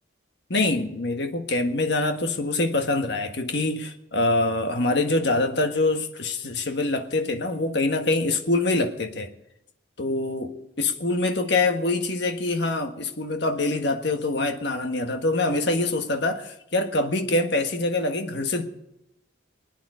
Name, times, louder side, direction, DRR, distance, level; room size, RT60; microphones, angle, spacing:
voice 1, 0.5-9.3 10.0-18.7, left 2 dB, 60° left, 5 dB, 1.6 m, -25 dB
24.5 x 9.4 x 5.0 m, 0.82 s
head